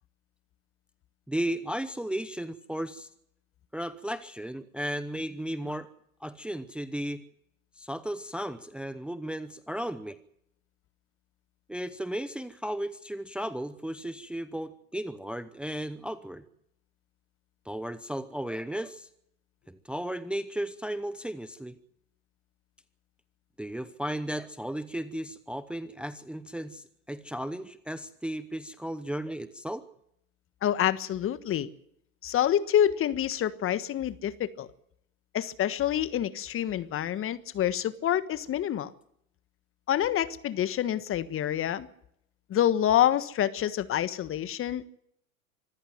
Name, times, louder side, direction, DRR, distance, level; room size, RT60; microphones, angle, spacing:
voice 1, 1.3-3.1 3.7-5.9 6.2-7.2 7.8-10.2 11.7-16.4 17.7-19.1 19.7-21.7 23.6-29.8, right 1 dB, 5° right, 14 dB, 0.9 m, -35 dB
voice 2, 30.6-31.7 32.2-34.7 35.3-38.9 39.9-41.9 42.5-44.9, left 11 dB, 30° left, 14 dB, 1.4 m, -27 dB
25.5 x 14.5 x 7.8 m, 0.73 s
hypercardioid pair, 95°, 41 cm